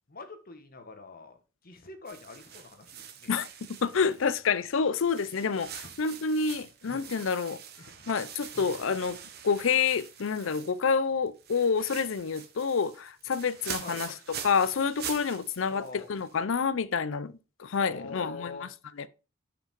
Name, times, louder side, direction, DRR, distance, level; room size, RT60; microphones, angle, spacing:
voice 1, 0.1-3.3 5.8-5.9 6.9-7.0 7.8-8.1 8.5-8.7 13.8-14.1 15.7-16.1 17.8-18.7, left 3 dB, 45° left, 1.2 m, -45 dB
sound 1, 2.1-4.6 5.0-11.0 11.3-16.4, right 8 dB, 50° right, 1.1 m, -44 dB
voice 2, 3.8-7.6 8.1-9.2 9.4-14.1 14.4-17.3 17.6-18.7, left 5 dB, 70° left, 0.5 m, -28 dB
5.8 x 5.1 x 5.1 m
head